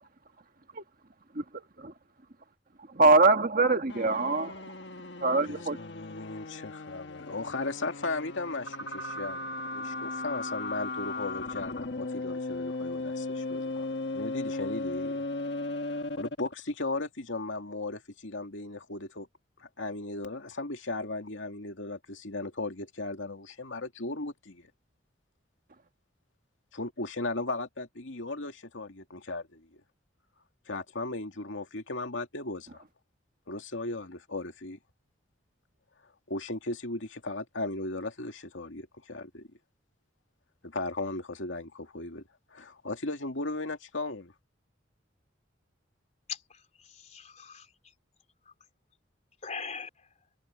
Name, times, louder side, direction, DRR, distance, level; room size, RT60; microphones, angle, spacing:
voice 1, 2.9-4.5 5.2-5.8, right 3 dB, 45° right, 1.6 m, -23 dB
sound 1, 3.9-16.6, left 2 dB, 60° left, 1.5 m, -36 dB
voice 2, 5.4-9.4 9.7-15.3 15.9-19.3 19.6-24.7 26.7-29.8 30.7-32.8 33.5-34.8 36.3-39.5 40.6-42.2 42.5-44.3, left 2 dB, 80° left, 2.5 m, -36 dB
voice 3, 46.3-47.7 49.4-50.1, left 6 dB, 35° left, 3.7 m, -41 dB
head